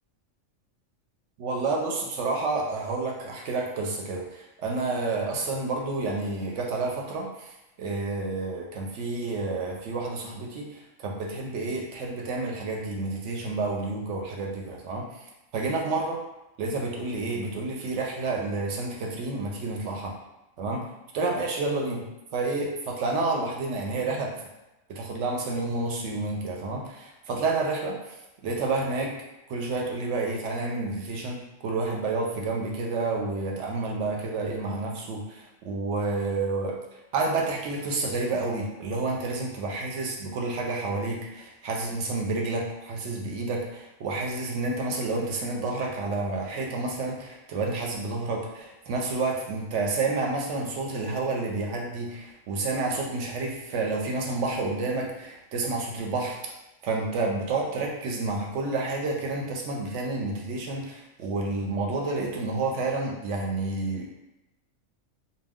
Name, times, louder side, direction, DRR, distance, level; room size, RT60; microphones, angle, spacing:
voice 1, 1.4-7.5 7.8-15.1 15.5-16.2 16.6-20.2 20.6-20.9 21.1-22.1 22.3-24.3 24.9-28.2 28.4-29.1 29.5-36.8 37.1-56.4 56.8-64.1, right 3 dB, 70° right, 0 dB, 0.8 m, -29 dB
2.2 x 2.2 x 3.4 m, 0.99 s
omnidirectional pair, 1.4 m